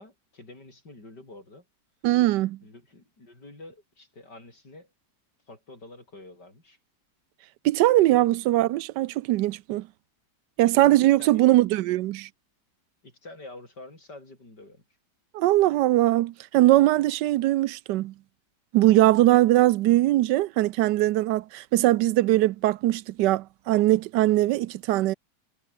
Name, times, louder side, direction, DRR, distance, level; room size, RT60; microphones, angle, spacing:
voice 1, 0.0-1.7 2.6-4.9 5.5-6.8 8.1-8.3 10.7-10.9 11.2-11.4 13.0-14.8, left 2 dB, 75° left, 8.1 m, -47 dB
voice 2, 2.0-2.6 7.6-9.9 10.6-12.3 15.3-18.1 18.7-25.1, right 16 dB, 90° right, 1.2 m, -21 dB
omnidirectional pair, 1.8 m